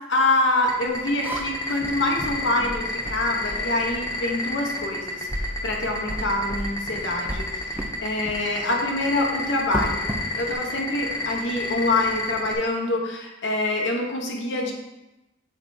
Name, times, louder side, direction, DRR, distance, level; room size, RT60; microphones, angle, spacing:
voice 1, 0.1-5.3 5.6-7.5 8.0-10.0 10.3-14.7, left 2 dB, 70° left, 0 dB, 1.1 m, -25 dB
sound 1, 0.6-12.5, left 1 dB, 20° left, 1.1 m, -29 dB
sound 2, 0.9-4.2 4.8-4.9 5.3-8.0 8.3-8.5 9.5-10.5, right 1 dB, 10° right, 0.5 m, -33 dB
7.8 x 3.5 x 4.3 m, 0.97 s
head